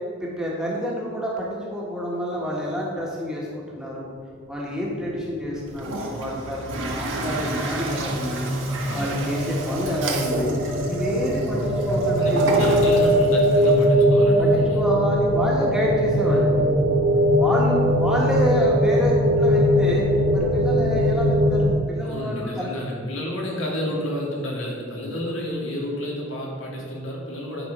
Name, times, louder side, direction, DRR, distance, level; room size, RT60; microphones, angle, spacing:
voice 1, 0.2-3.5 3.8-4.1 4.5-8.5 8.9-10.5 10.9-12.6 14.4-16.7 16.9-17.0 17.4-20.0 20.3-22.7, equal, 5° right, -5 dB, 1.5 m, -28 dB
sound 1, 5.2-21.7, equal, 30° right, 1.5 m, -21 dB
Toilet flush, 5.7-13.9, right 2 dB, 75° right, 1.5 m, -32 dB
voice 2, 8.6-9.0 12.2-14.8 22.0-27.7, left 1 dB, 80° left, -3 dB, 2.3 m, -30 dB
10.5 x 5.5 x 5.4 m, 2.1 s
head